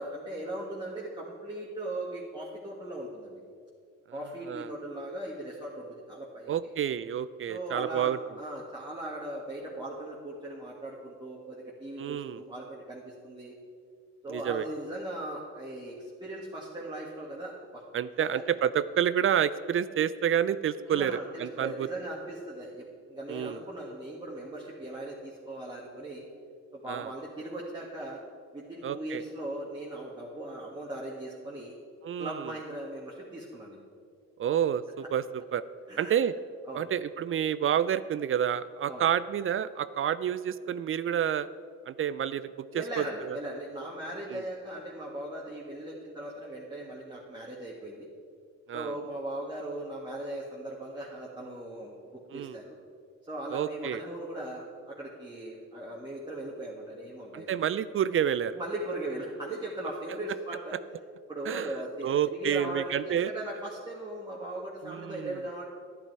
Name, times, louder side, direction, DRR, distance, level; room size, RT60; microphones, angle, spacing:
voice 1, 0.0-3.4 4.1-6.7 7.5-13.5 14.2-17.8 18.2-18.4 20.9-26.3 26.7-28.2 28.5-31.8 32.2-33.8 35.9-36.2 36.7-36.9 38.8-39.1 42.7-48.1 48.7-52.8 53.3-57.5 58.5-60.8 61.3-65.6, right 1 dB, 15° right, -5 dB, 1.8 m, -39 dB
voice 2, 6.5-8.2 12.0-12.4 14.3-14.6 17.9-21.9 23.3-23.6 26.9-27.1 28.8-29.2 32.0-32.5 34.4-35.6 36.0-36.3 36.7-41.5 41.9-43.4 44.3-44.4 48.7-48.9 52.3-52.6 53.5-54.0 57.3-58.6 61.5-61.7 62.0-63.3 64.8-65.4, right 9 dB, 45° right, 16 dB, 0.4 m, -29 dB
11.0 x 10.5 x 4.6 m, 2.2 s
cardioid pair, 90°, 30 cm